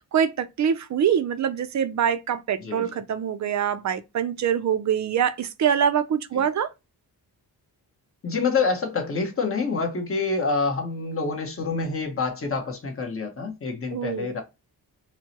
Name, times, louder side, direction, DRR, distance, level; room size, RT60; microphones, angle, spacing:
voice 1, 0.0-6.7 13.9-14.3, right 8 dB, 45° right, 0.4 m, -24 dB
voice 2, 2.6-3.0 6.3-6.4 8.2-14.4, left 4 dB, 35° left, 1.1 m, -27 dB
4.4 x 2.1 x 2.8 m
wide cardioid pair, 155°, 39 cm